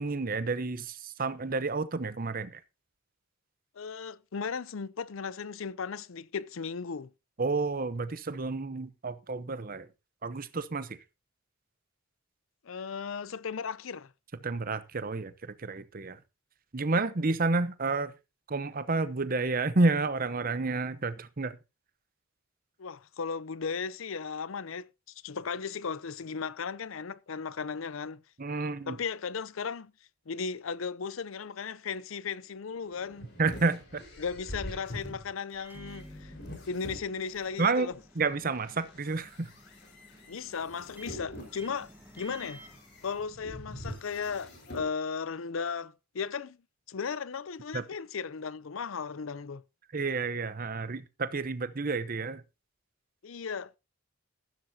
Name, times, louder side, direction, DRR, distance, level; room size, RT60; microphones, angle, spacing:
voice 1, 0.0-2.6 7.4-9.9 10.2-10.9 14.4-15.3 15.6-16.2 16.7-18.1 18.5-21.6 28.4-29.0 33.4-34.0 37.6-37.9 38.2-39.5 47.7-47.8 49.9-52.4, right 3 dB, 45° right, 0.8 m, -30 dB
voice 2, 3.8-7.1 12.6-14.1 22.8-24.9 25.2-28.2 28.9-29.9 30.3-33.3 34.2-36.3 36.7-38.0 40.3-41.9 42.1-42.6 43.0-46.6 46.9-49.6 53.2-53.8, left 5 dB, 75° left, 0.6 m, -36 dB
sound 1, 32.6-37.7 38.3-44.9, left 1 dB, 55° left, 4.6 m, -45 dB
Microwave oven, 35.5-43.7, right 1 dB, 10° right, 1.2 m, -53 dB
14.5 x 12.0 x 2.7 m
head